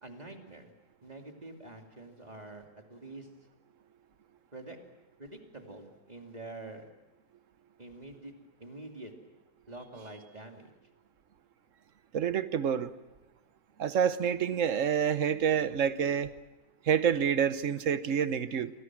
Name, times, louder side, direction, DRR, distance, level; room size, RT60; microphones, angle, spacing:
voice 1, 0.0-0.7 1.0-3.3 4.5-4.8 5.2-6.9 7.8-8.3 8.6-9.1 9.7-10.7, right 2 dB, 25° right, 2 dB, 2.8 m, -46 dB
voice 2, 12.1-12.9 13.8-16.3 16.9-18.7, right 8 dB, 55° right, 13 dB, 1.3 m, -28 dB
29.5 x 24.0 x 6.2 m, 1.1 s
omnidirectional pair, 1.7 m